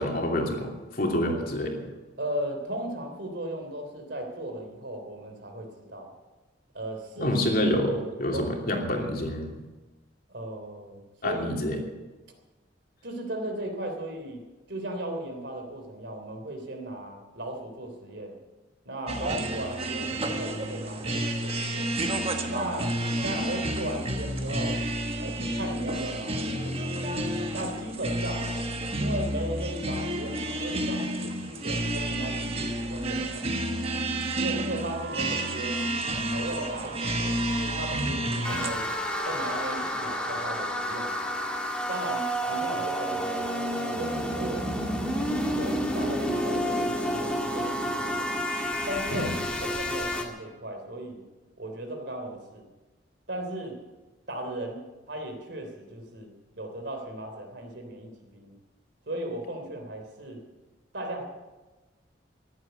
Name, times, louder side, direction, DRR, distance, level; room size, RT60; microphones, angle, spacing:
voice 1, 0.0-1.8 7.2-9.6 11.2-11.8 49.1-49.3, left 1 dB, 50° left, 1 dB, 2.8 m, -27 dB
voice 2, 2.2-6.1 6.7-7.4 7.9-8.0 8.3-8.5 10.3-11.5 13.0-14.4 14.7-18.4 18.8-21.9 22.5-23.0 23.2-24.8 25.2-27.1 27.5-28.6 29.0-34.0 34.4-35.8 36.3-38.9 39.2-41.3 41.9-44.7 45.1-48.3 48.9-49.3 49.6-51.2 51.6-52.6 53.3-53.8 54.3-54.8 55.1-58.5 59.1-60.4 60.9-61.2, right 1 dB, 65° right, 4 dB, 3.3 m, -36 dB
sound 1, 19.1-38.7, right 1 dB, 30° right, 1.4 m, -30 dB
sound 2, 34.7-41.9, right 6 dB, 85° right, 4.6 m, -42 dB
sound 3, 38.4-50.2, equal, 5° left, 1.7 m, -30 dB
14.5 x 11.0 x 8.1 m, 1.2 s
head